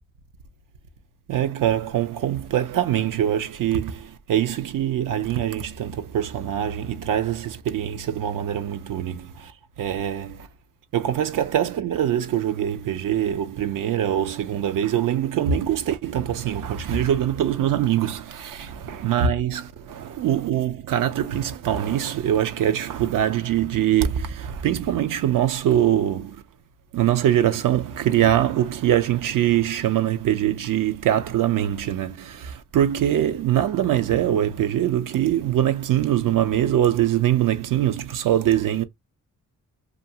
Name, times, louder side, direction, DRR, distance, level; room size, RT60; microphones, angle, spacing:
voice 1, 1.3-9.5 9.8-10.5 10.9-26.4 26.9-38.8, right 11 dB, 85° right, 0.5 m, -23 dB
2.4 x 2.3 x 2.7 m
cardioid pair, 70°, 32 cm